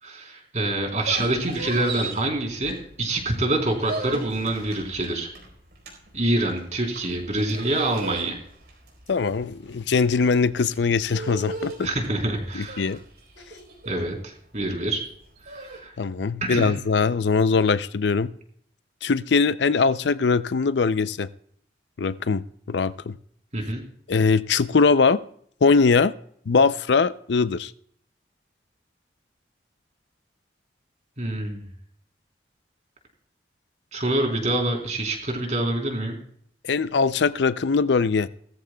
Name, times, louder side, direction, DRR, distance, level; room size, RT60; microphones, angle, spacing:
voice 1, 0.0-5.3 6.1-8.4 11.8-12.9 13.9-15.0 15.4-15.9 16.4-16.7 23.5-23.8 31.2-31.6 33.9-36.2, right 1 dB, 40° right, 3.7 m, -26 dB
sound 1, 0.8-3.2 3.5-15.8, right 2 dB, 65° right, 4.4 m, -37 dB
voice 2, 9.1-11.9 12.5-13.0 16.0-18.3 19.0-21.3 22.0-23.1 24.1-25.2 25.6-26.1 26.5-27.7 36.6-38.3, left 4 dB, 75° left, 0.5 m, -21 dB
19.0 x 14.0 x 2.3 m
head